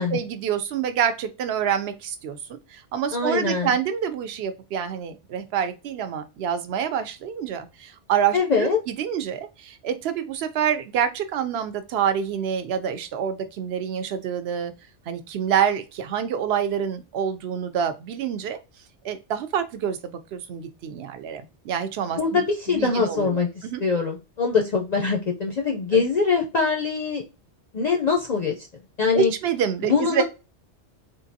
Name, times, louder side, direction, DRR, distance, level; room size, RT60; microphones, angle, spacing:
voice 1, 0.0-2.4 2.7-14.7 15.1-18.6 19.0-23.8 25.9-26.0 29.1-30.2, right 8 dB, 65° right, 0.8 m, -27 dB
voice 2, 3.1-3.8 8.3-8.8 22.2-27.2 27.7-28.5 29.0-29.3 29.8-30.2, left 5 dB, 50° left, 0.5 m, -23 dB
3.7 x 2.5 x 2.6 m
omnidirectional pair, 1.2 m